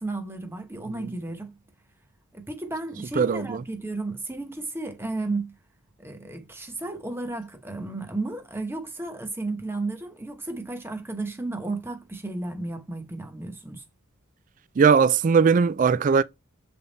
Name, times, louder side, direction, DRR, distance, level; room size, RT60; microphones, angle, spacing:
voice 1, 0.0-1.6 2.3-5.5 6.0-13.8, right 2 dB, 10° right, 1.0 m, -33 dB
voice 2, 3.2-3.6 14.8-16.2, right 6 dB, 40° right, 0.3 m, -19 dB
7.0 x 3.5 x 4.0 m
head